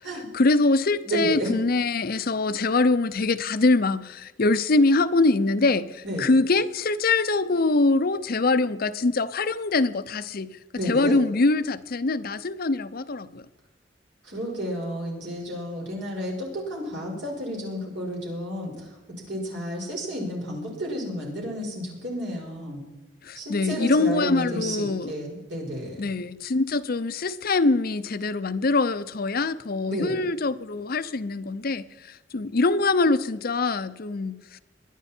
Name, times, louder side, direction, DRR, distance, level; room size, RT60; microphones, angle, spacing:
voice 1, 0.1-10.6 10.8-13.4 23.2-25.1 26.0-34.6, left 3 dB, 55° left, 0.7 m, -23 dB
voice 2, 1.0-1.5 6.0-6.3 10.8-11.2 14.2-18.9 19.3-22.9 23.4-26.1 29.9-30.2, equal, 70° right, 5.5 m, -31 dB
22.5 x 10.0 x 4.4 m
head